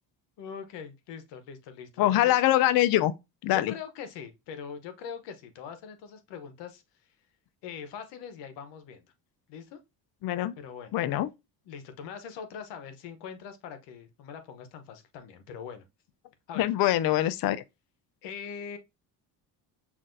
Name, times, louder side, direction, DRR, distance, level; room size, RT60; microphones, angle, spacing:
voice 1, 0.4-2.4 3.5-6.8 7.6-9.1 9.5-9.8 10.6-10.9 11.6-15.9 16.5-16.7 18.2-18.8, left 7 dB, 90° left, 1.0 m, -42 dB
voice 2, 2.0-3.1 3.4-3.7 10.2-10.5 10.9-11.3 16.6-17.6, left 14 dB, 60° left, 0.5 m, -24 dB
5.8 x 2.6 x 2.5 m
cardioid pair, 95°, 41 cm